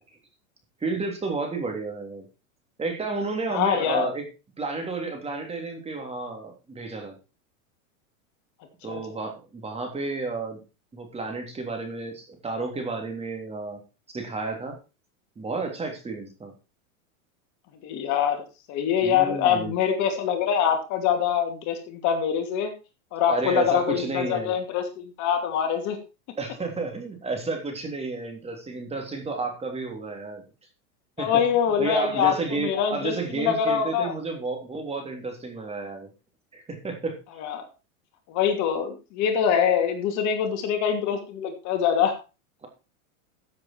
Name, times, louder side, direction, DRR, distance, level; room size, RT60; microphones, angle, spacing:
voice 1, 0.8-2.2 2.8-4.2 4.6-7.2 8.8-10.6 10.9-13.8 14.1-14.7 15.4-16.5 19.0-19.8 23.3-24.5 26.4-30.4 31.2-31.4 31.8-36.1 36.5-37.2 42.6-42.7, right 3 dB, 15° right, 3 dB, 3.4 m, -31 dB
voice 2, 3.5-4.1 8.9-9.0 17.8-18.4 18.7-22.7 23.1-26.0 31.2-34.1 37.4-37.6 38.3-42.2, left 8 dB, 45° left, 6 dB, 2.6 m, -24 dB
14.5 x 7.6 x 4.5 m, 0.30 s
supercardioid pair, 130°, 41 cm